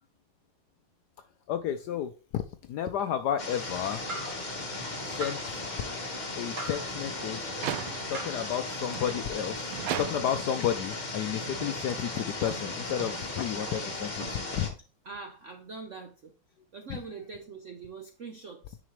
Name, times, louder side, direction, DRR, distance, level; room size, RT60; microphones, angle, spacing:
voice 1, 1.5-4.0 5.0-5.7 6.4-7.6 8.1-14.7 16.9-17.0, left 9 dB, 75° left, 0.9 m, -32 dB
sound 1, 3.4-14.7, left 2 dB, 30° left, 1.0 m, -36 dB
sound 2, 4.0-9.2, right 1 dB, 35° right, 0.9 m, -43 dB
sound 3, 7.5-8.3 8.9-10.6 11.3-14.8, right 11 dB, 90° right, 1.5 m, -40 dB
voice 2, 15.0-16.3 16.7-18.8, right 4 dB, 65° right, 0.7 m, -43 dB
9.8 x 5.0 x 3.1 m
omnidirectional pair, 2.2 m